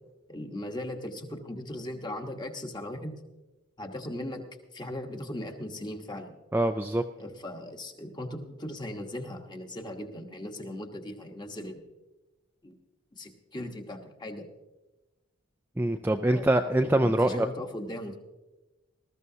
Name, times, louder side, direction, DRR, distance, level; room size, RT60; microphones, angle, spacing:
voice 1, 0.3-3.1 3.8-4.4 4.7-6.3 7.2-11.8 12.6-12.7 13.1-14.5 16.3-16.5 17.0-18.2, left 1 dB, 20° left, 4 dB, 1.1 m, -38 dB
voice 2, 6.5-7.0 15.8-17.5, right 1 dB, 10° right, 5 dB, 0.3 m, -24 dB
20.0 x 13.5 x 2.8 m, 1.1 s
head